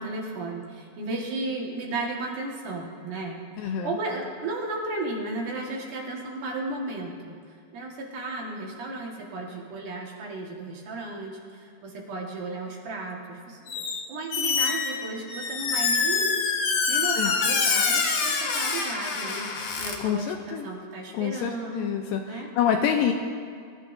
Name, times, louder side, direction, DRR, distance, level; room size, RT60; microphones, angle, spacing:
voice 1, 0.0-7.3 7.7-13.8 14.1-16.4 16.9-22.5, right 2 dB, 60° right, -2 dB, 2.9 m, -34 dB
voice 2, 3.6-4.0 17.2-17.3 20.0-20.7 21.1-23.1, left 8 dB, 80° left, 4 dB, 2.1 m, -27 dB
Squeak, 13.7-14.0 14.3-20.0, left 5 dB, 60° left, 2.5 m, -26 dB
24.0 x 14.5 x 2.6 m, 2.2 s
omnidirectional pair, 4.6 m